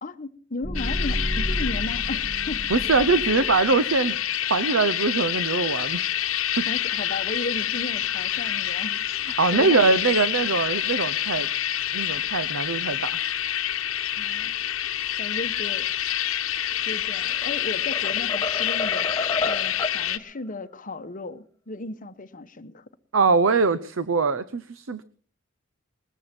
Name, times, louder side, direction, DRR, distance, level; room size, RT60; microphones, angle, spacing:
voice 1, 0.0-2.7 6.7-9.0 9.5-10.6 14.2-14.5 15.2-15.9 16.8-22.8, left 2 dB, 40° left, 1.1 m, -35 dB
sound 1, 0.6-3.8, equal, 10° right, 3.5 m, -31 dB
sound 2, 0.7-20.2, left 11 dB, 85° left, 1.0 m, -27 dB
voice 2, 2.7-4.2 4.5-6.0 6.6-6.7 9.4-11.5 11.9-13.2 23.1-25.0, right 4 dB, 70° right, 0.7 m, -22 dB
sound 3, 17.0-17.5 17.9-20.0, left 2 dB, 15° left, 1.3 m, -30 dB
21.0 x 14.5 x 4.4 m
head